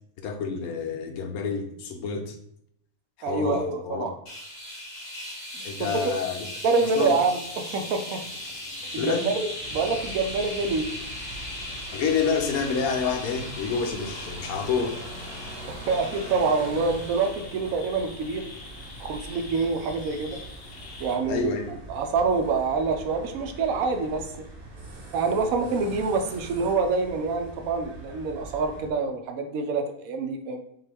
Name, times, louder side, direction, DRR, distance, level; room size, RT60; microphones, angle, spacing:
voice 1, 0.2-2.4 3.2-4.1 5.6-6.5 6.8-7.1 9.0-9.3 11.9-15.0 21.3-21.7, left 5 dB, 80° left, 4 dB, 1.2 m, -28 dB
voice 2, 3.2-4.1 6.6-8.2 8.9-10.9 15.9-18.5 19.0-20.4 21.0-21.6 21.9-24.3 25.1-30.6, right 4 dB, 75° right, 6 dB, 1.0 m, -26 dB
sound 1, 4.3-17.6, left 1 dB, 30° left, 1.3 m, -39 dB
sound 2, 7.4-21.2, left 3 dB, 50° left, 0.8 m, -44 dB
sound 3, 9.6-28.9, right 2 dB, 45° right, 1.0 m, -43 dB
5.7 x 2.5 x 3.4 m, 0.71 s
omnidirectional pair, 1.5 m